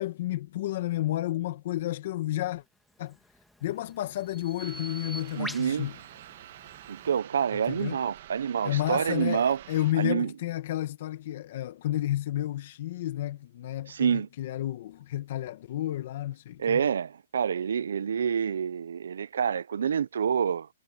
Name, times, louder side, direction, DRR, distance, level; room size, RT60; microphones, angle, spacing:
voice 1, 0.0-2.6 3.0-3.2 3.6-5.9 7.7-8.0 8.6-16.8, left 14 dB, 45° left, 1.2 m, -31 dB
Bird vocalization bird call bird song, 3.0-7.2, equal, ahead, 1.4 m, -45 dB
sound 1, 4.6-9.9, right 13 dB, 45° right, 1.7 m, -48 dB
voice 2, 5.3-5.9 6.9-9.6 10.0-10.3 13.9-14.3 16.6-20.7, right 7 dB, 80° right, 0.5 m, -27 dB
hypercardioid pair, 170°, 0 cm